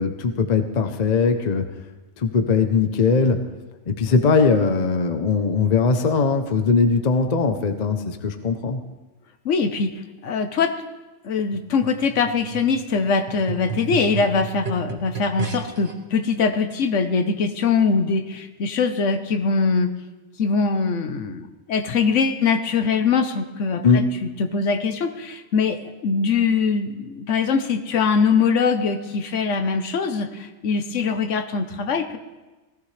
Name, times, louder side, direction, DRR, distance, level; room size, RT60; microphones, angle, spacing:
voice 1, 0.0-1.7 2.2-3.5 3.9-8.8 23.8-24.1, left 4 dB, 40° left, 7 dB, 0.8 m, -20 dB
voice 2, 9.4-10.8 11.2-19.9 20.4-24.0 24.4-32.2, left 5 dB, 80° left, 9 dB, 1.2 m, -22 dB
sound 1, 11.5-15.9 16.7-16.8, right 7 dB, 55° right, 1.5 m, -33 dB
18.0 x 15.5 x 3.3 m, 1.2 s
omnidirectional pair, 1.2 m